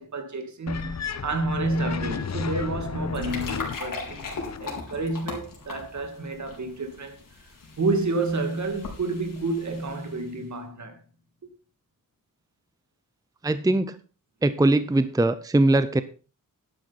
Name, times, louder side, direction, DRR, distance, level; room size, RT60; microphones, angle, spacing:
voice 1, 0.0-4.3 4.6-7.2 7.8-11.0, right 2 dB, 60° right, 2.5 m, -29 dB
sound 1, 0.7-4.7, left 6 dB, 55° left, 0.9 m, -33 dB
sound 2, 2.9-10.4, left 4 dB, 90° left, 4.3 m, -40 dB
voice 2, 13.4-14.0 14.4-16.0, right 2 dB, 10° right, 0.6 m, -21 dB
11.5 x 10.0 x 4.2 m
wide cardioid pair, 120°, 32 cm